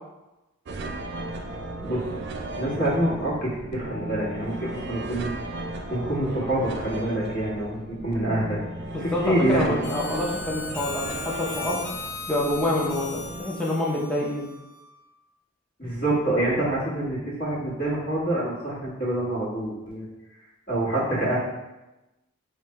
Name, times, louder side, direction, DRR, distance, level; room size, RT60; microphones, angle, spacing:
sound 1, 0.7-13.4, right 2 dB, 55° right, 0.4 m, -36 dB
voice 1, 2.6-5.3 5.9-8.6 9.0-9.8 15.8-20.0 20.7-21.4, right 1 dB, 40° left, -7 dB, 1.5 m, -26 dB
voice 2, 8.9-11.8 12.3-14.5, left 1 dB, 5° left, -5 dB, 0.6 m, -27 dB
Harmonica, 9.8-15.0, left 3 dB, 60° left, 0.6 m, -37 dB
5.0 x 2.2 x 3.1 m, 1.0 s
head